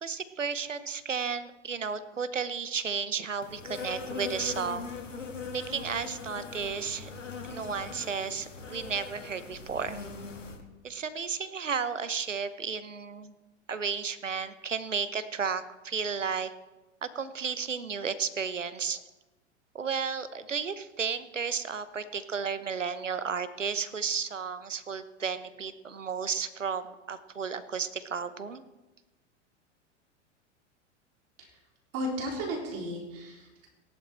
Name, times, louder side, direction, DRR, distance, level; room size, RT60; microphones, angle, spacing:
voice 1, 0.0-4.9 5.5-7.1 7.5-10.0 10.8-13.3 13.7-16.5 17.1-19.0 19.7-28.6, right 6 dB, 90° right, 14 dB, 0.9 m, -33 dB
Insect, 3.4-10.6, left 4 dB, 90° left, 1.8 m, -40 dB
voice 2, 31.9-33.7, equal, 40° right, 0 dB, 4.0 m, -35 dB
17.0 x 11.0 x 4.4 m, 1.1 s
figure-of-eight pair, 90°, 36 cm